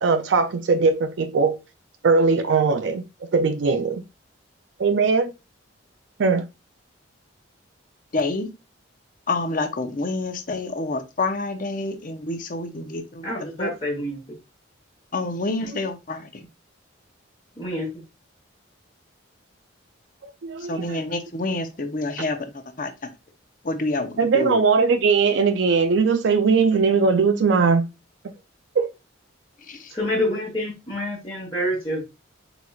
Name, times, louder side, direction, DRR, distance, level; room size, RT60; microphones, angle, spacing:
voice 1, 0.0-1.6 2.0-3.0 3.3-4.0 4.8-5.3 6.2-6.4 20.4-21.0 24.2-27.8 28.8-28.9, right 4 dB, 65° right, 0.4 m, -20 dB
voice 2, 8.1-8.5 9.3-13.2 13.6-13.7 15.1-16.2 20.7-22.4 22.8-22.9 23.7-24.6 29.7-29.8, left 2 dB, 45° left, 0.7 m, -27 dB
voice 3, 13.2-14.2 17.6-17.9 29.9-32.0, left 1 dB, 25° left, 1.2 m, -27 dB
4.4 x 4.0 x 2.3 m
head